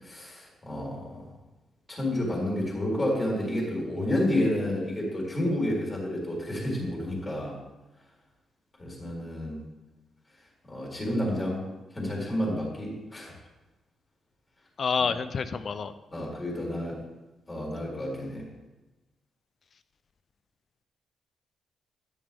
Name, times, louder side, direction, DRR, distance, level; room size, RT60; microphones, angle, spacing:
voice 1, 0.0-1.2 1.9-7.6 8.8-9.6 10.7-11.6 11.9-13.3 15.0-15.1 16.1-17.0 17.5-18.5, left 1 dB, 20° left, -4 dB, 4.2 m, -30 dB
voice 2, 14.8-15.9, left 5 dB, 45° left, 12 dB, 0.7 m, -28 dB
12.5 x 11.0 x 3.6 m, 1.1 s
cardioid pair, 120°, 0 cm